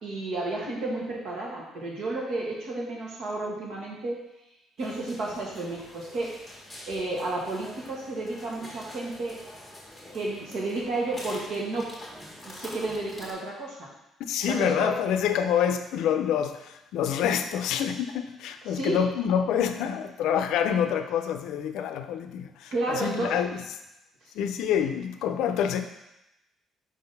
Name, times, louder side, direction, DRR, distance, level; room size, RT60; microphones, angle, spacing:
voice 1, 0.0-4.2 4.8-6.4 6.9-9.4 10.1-11.9 12.4-13.9 14.5-14.9 18.7-19.0 22.7-23.3, right 2 dB, 60° right, -3 dB, 1.6 m, -31 dB
sound 1, 4.8-13.3, left 1 dB, 5° left, 1.4 m, -45 dB
voice 2, 14.2-23.5 24.3-25.8, left 8 dB, 80° left, 8 dB, 0.4 m, -27 dB
5.0 x 3.8 x 5.4 m, 0.91 s
cardioid pair, 160°, 0 cm